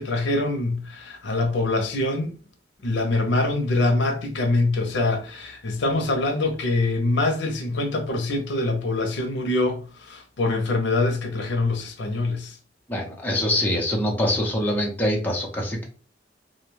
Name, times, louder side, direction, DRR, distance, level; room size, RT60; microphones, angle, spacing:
voice 1, 0.0-2.4 2.8-12.6, left 2 dB, 80° left, 0.6 m, -24 dB
voice 2, 12.9-15.8, left 1 dB, 10° left, 0.7 m, -24 dB
2.5 x 2.2 x 3.1 m
head